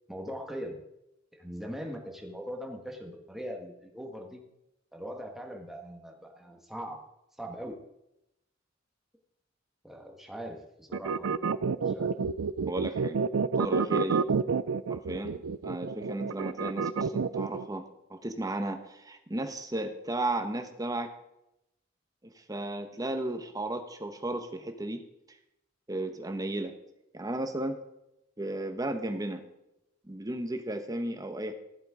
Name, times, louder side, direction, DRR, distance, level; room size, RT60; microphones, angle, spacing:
voice 1, 0.1-0.8 1.3-4.4 4.9-7.0 7.4-7.8 9.8-11.5 11.9-12.1, equal, ahead, 1 dB, 1.6 m, -41 dB
sound 1, 10.9-17.7, right 5 dB, 80° right, 0.4 m, -29 dB
voice 2, 12.7-13.2 13.6-14.3 14.9-17.8 18.1-21.1 22.2-25.0 25.9-26.7 27.1-27.8 28.4-29.4 30.0-31.5, right 1 dB, 20° right, 7 dB, 1.1 m, -34 dB
14.0 x 7.7 x 4.9 m, 0.86 s
head